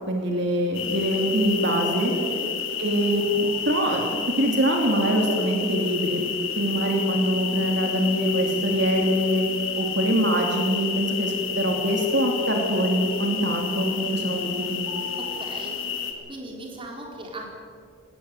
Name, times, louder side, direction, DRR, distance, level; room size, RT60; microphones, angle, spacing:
voice 1, 0.1-2.1 2.8-4.0 4.4-6.2 6.5-9.4 9.8-14.8, equal, 55° right, 1 dB, 3.0 m, -24 dB
sound 1, 0.7-16.1, left 7 dB, 65° left, 2.5 m, -30 dB
voice 2, 2.1-2.5 15.2-15.8 16.3-17.5, right 1 dB, 25° right, 0 dB, 3.7 m, -38 dB
19.5 x 18.0 x 8.1 m, 2.3 s
head